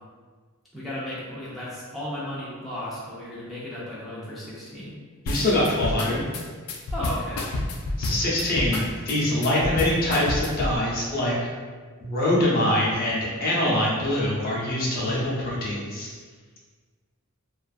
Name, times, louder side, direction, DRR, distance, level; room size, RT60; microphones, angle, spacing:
voice 1, 0.7-5.0 6.9-7.4, left 1 dB, ahead, -10 dB, 0.5 m, -34 dB
voice 2, 5.2-6.2 8.0-11.3 12.0-16.1, left 1 dB, 45° left, -6 dB, 0.6 m, -24 dB
sound 1, 5.3-10.8, left 2 dB, 90° left, 0.3 m, -29 dB
2.4 x 2.4 x 2.4 m, 1.5 s
head